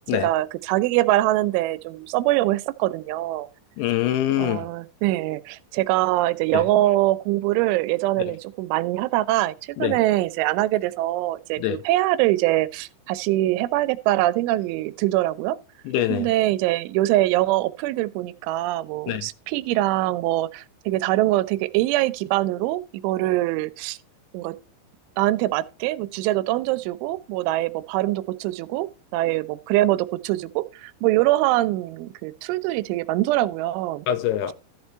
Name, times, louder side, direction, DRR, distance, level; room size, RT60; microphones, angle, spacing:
voice 1, 0.2-3.5 4.4-15.6 16.1-24.0 24.3-24.5 25.2-28.9 29.1-34.1, right 16 dB, 85° right, 3.1 m, -23 dB
voice 2, 3.8-4.7 6.5-6.7 9.8-10.0 11.6-11.8 15.9-16.3 19.1-19.2 34.1-34.5, left 12 dB, 85° left, 2.9 m, -24 dB
13.5 x 5.3 x 4.5 m
omnidirectional pair, 5.4 m